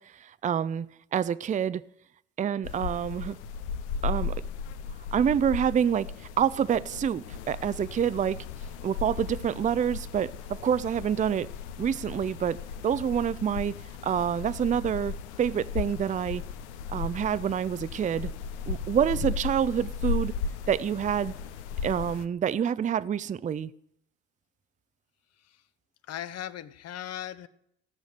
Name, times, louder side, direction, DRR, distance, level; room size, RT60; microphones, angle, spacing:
voice 1, 0.0-1.8 2.4-3.4 4.0-4.4 5.1-6.1 6.4-8.4 8.8-11.5 11.8-12.6 12.8-13.8 14.0-16.4 16.9-18.3 18.7-20.3 20.7-21.3 21.8-23.7, right 8 dB, 25° right, 0.5 m, -27 dB
sound 1, 2.6-22.3, left 6 dB, 80° left, 0.7 m, -36 dB
voice 2, 26.0-27.5, left 11 dB, 50° left, 0.9 m, -38 dB
16.5 x 6.4 x 6.7 m
hypercardioid pair, 60°, 34 cm